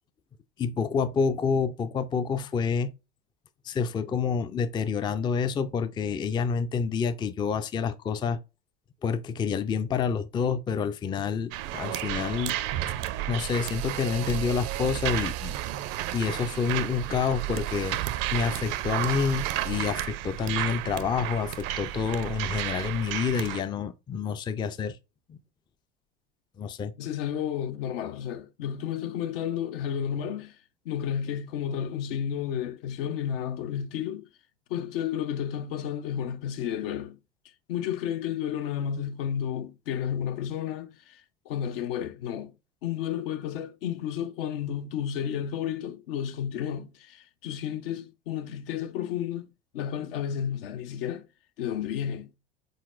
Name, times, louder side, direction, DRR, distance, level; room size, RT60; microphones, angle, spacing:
voice 1, 0.6-2.9 3.6-8.4 9.0-12.5 13.3-15.6 16.1-18.0 18.3-25.0 25.3-25.4 26.6-26.9, left 6 dB, 15° left, 0.4 m, -28 dB
sound 1, 11.5-23.6, right 14 dB, 50° right, 0.5 m, -32 dB
voice 2, 27.0-30.5 30.9-34.3 34.7-37.2 37.7-41.2 41.5-42.5 42.8-49.5 49.7-51.2 51.6-52.4, left 9 dB, 65° left, 0.7 m, -32 dB
4.1 x 4.0 x 2.4 m
hypercardioid pair, 80°, 31 cm